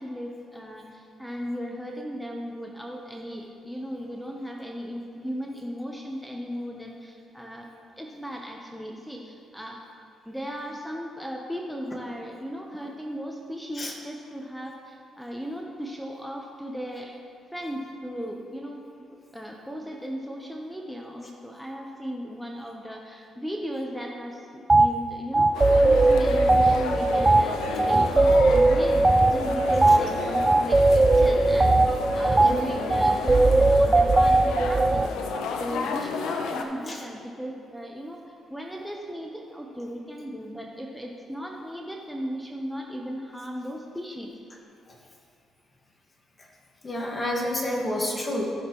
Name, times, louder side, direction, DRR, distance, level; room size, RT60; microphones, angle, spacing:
voice 1, 0.0-7.7 8.0-9.8 10.3-17.2 17.5-18.8 19.3-44.3, equal, ahead, 0 dB, 0.8 m, -36 dB
sound 1, 24.7-24.9 25.3-35.1, right 2 dB, 20° right, 0.4 m, -19 dB
sound 2, 25.5-36.6, left 5 dB, 85° left, 0.7 m, -33 dB
voice 2, 46.8-48.5, left 1 dB, 30° left, 0 dB, 1.6 m, -29 dB
14.0 x 6.5 x 3.0 m, 2.4 s
cardioid pair, 90°, 0 cm